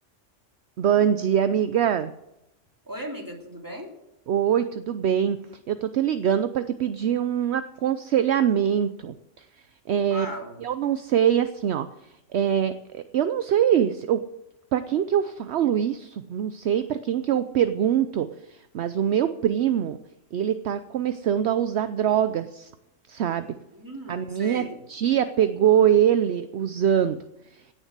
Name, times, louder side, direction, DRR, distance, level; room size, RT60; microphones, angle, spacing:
voice 1, 0.8-2.1 4.3-5.4 5.7-9.4 9.9-10.3 10.6-11.9 12.3-14.2 14.7-20.0 20.3-22.7 23.1-23.5 24.1-27.2 27.5-27.6, right 9 dB, 65° right, 12 dB, 0.9 m, -23 dB
voice 2, 2.8-3.9 10.1-10.6 23.7-24.8, equal, 15° right, 1 dB, 2.7 m, -37 dB
16.5 x 7.3 x 8.1 m, 0.89 s
omnidirectional pair, 1.3 m